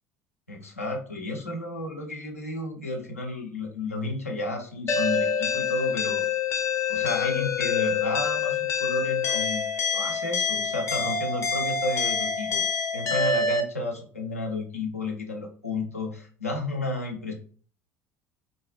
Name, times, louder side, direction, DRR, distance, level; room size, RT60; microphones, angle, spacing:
voice 1, 0.5-6.2 6.9-9.7 9.9-17.3, left 2 dB, 85° left, 2 dB, 0.7 m, -32 dB
sound 1, 4.9-13.6, left 5 dB, 35° left, 0.8 m, -26 dB
4.0 x 2.3 x 3.2 m, 0.41 s
figure-of-eight pair, 65°, 8 cm